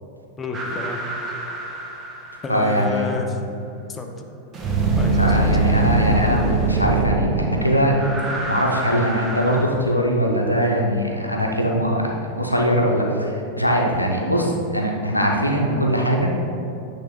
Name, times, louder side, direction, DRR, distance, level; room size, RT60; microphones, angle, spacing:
voice 1, 0.4-1.3 2.4-3.5 3.9-4.3 5.0-5.6, left 3 dB, 20° left, 3 dB, 0.6 m, -30 dB
sound 1, 0.5-2.8 4.5-9.6, right 2 dB, 25° right, 0.8 m, -23 dB
voice 2, 2.5-3.1 5.2-8.1 8.5-16.4, equal, 90° left, 0 dB, 0.7 m, -21 dB
8.6 x 3.4 x 3.7 m, 2.7 s
figure-of-eight pair, 90°, 0 cm